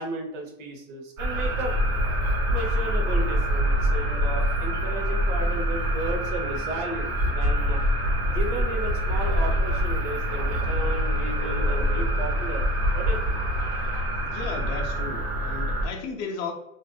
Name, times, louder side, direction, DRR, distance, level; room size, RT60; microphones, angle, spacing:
voice 1, 0.0-1.7 2.5-7.8 8.3-12.6 12.9-13.4, right 2 dB, 70° right, 1 dB, 0.9 m, -34 dB
sound 1, 1.2-15.9, equal, 55° right, 1.3 m, -25 dB
voice 2, 14.2-16.5, left 4 dB, 40° left, 2 dB, 0.6 m, -34 dB
2.5 x 2.5 x 2.2 m, 0.84 s
supercardioid pair, 130°, 40 cm